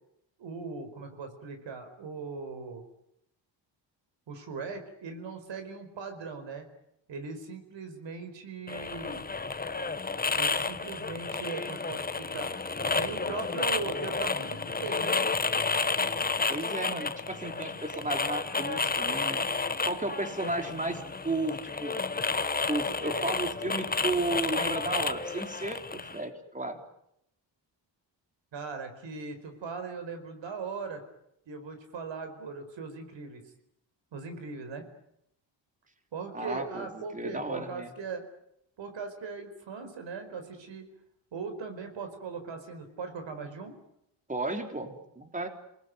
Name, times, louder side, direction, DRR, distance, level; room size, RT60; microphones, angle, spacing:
voice 1, 0.4-2.8 4.3-6.7 7.1-9.3 10.3-12.5 12.9-15.1 28.5-31.0 31.5-33.4 34.1-34.9 36.1-38.2 38.8-40.9 41.3-43.7, right 4 dB, 70° right, 8 dB, 4.9 m, -39 dB
sound 1, 8.7-26.2, left 4 dB, 20° left, 1.1 m, -31 dB
voice 2, 16.5-19.4 19.9-21.9 22.7-26.8 36.3-37.9 44.3-45.5, right 2 dB, 15° right, 5 dB, 3.8 m, -33 dB
27.5 x 20.0 x 9.4 m, 0.79 s
cardioid pair, 90°, 45 cm